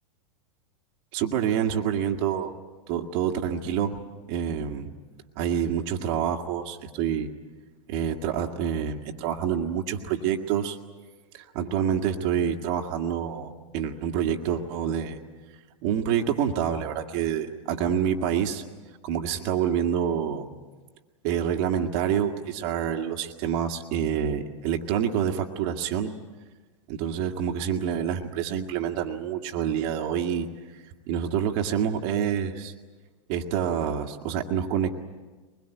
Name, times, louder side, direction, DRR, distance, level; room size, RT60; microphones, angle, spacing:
voice 1, 1.1-2.5 2.9-4.0 4.3-4.9 5.4-7.3 7.9-10.8 11.3-15.2 15.8-18.6 19.0-20.5 21.2-26.1 26.9-30.5 30.7-32.7 33.3-35.0, right 8 dB, 50° right, 4 dB, 2.1 m, -27 dB
23.0 x 21.5 x 9.3 m, 1.3 s
hypercardioid pair, 100°, 16 cm